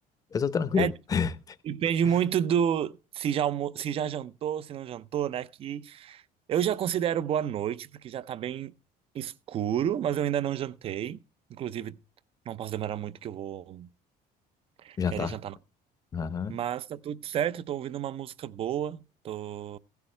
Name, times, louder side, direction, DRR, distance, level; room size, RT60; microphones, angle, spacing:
voice 1, 0.3-1.6 15.0-15.4 16.1-16.6, left 6 dB, 20° left, 0.7 m, -28 dB
voice 2, 1.6-6.2 6.5-8.7 9.1-11.2 11.5-12.0 12.5-13.9 14.8-15.6 16.5-19.8, right 9 dB, 35° right, 0.5 m, -30 dB
16.0 x 11.5 x 3.3 m
cardioid pair, 180°, 17 cm